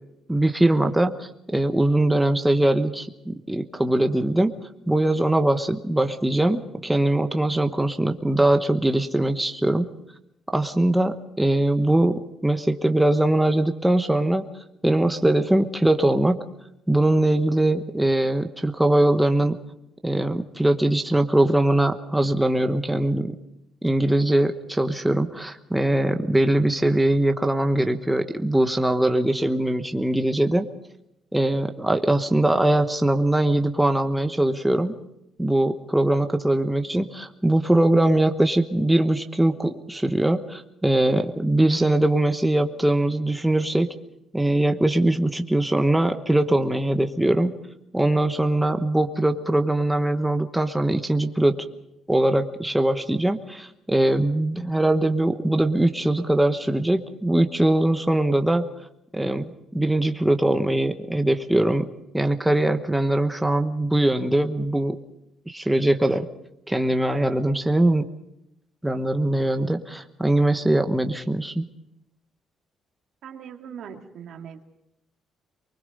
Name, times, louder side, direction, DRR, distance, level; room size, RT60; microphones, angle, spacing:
voice 1, 0.3-4.5 4.9-9.9 10.5-14.5 14.8-16.4 16.9-19.6 20.0-23.3 23.8-30.7 31.3-34.9 35.4-43.9 44.3-47.5 47.9-51.6 52.1-58.6 59.1-61.9 62.1-65.0 65.5-66.3 66.7-68.1 68.8-71.6, right 1 dB, 5° right, 6 dB, 1.1 m, -21 dB
voice 2, 73.2-74.7, right 7 dB, 70° right, 4 dB, 2.4 m, -40 dB
23.5 x 21.0 x 5.4 m, 0.85 s
cardioid pair, 105°, 0 cm